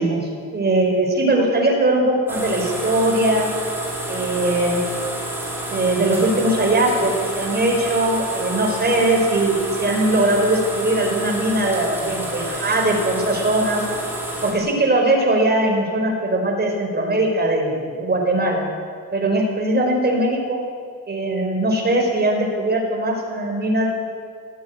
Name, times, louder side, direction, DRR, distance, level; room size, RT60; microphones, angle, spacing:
voice 1, 0.0-3.5 4.1-4.8 5.7-13.9 14.4-18.6 19.1-20.6 21.1-23.9, right 1 dB, 30° right, 1 dB, 4.9 m, -20 dB
sound 1, 2.3-14.5, right 1 dB, 5° right, 5.3 m, -29 dB
21.5 x 16.5 x 9.4 m, 2.1 s
wide cardioid pair, 155°, 34 cm